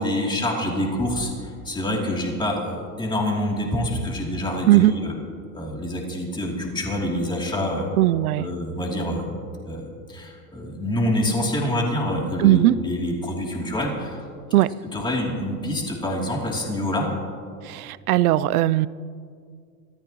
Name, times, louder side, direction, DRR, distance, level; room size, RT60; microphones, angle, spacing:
voice 1, 0.0-5.1 5.5-7.9 8.4-14.2 14.9-17.1, left 1 dB, 10° left, -2 dB, 2.9 m, -26 dB
voice 2, 8.0-8.5 12.4-12.7 14.5-14.7 17.6-18.9, right 15 dB, 90° right, 19 dB, 0.6 m, -18 dB
23.5 x 14.5 x 3.0 m, 2.1 s
supercardioid pair, 120°, 43 cm